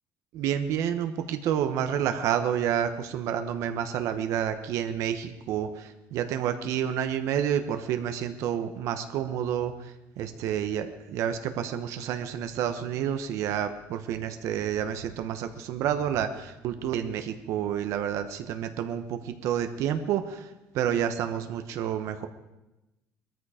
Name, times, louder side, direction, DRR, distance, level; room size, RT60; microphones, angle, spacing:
voice 1, 0.3-20.5 20.7-22.3, right 9 dB, 60° right, 8 dB, 1.0 m, -29 dB
20.5 x 13.5 x 5.0 m, 0.99 s
cardioid pair, 170°, 6 cm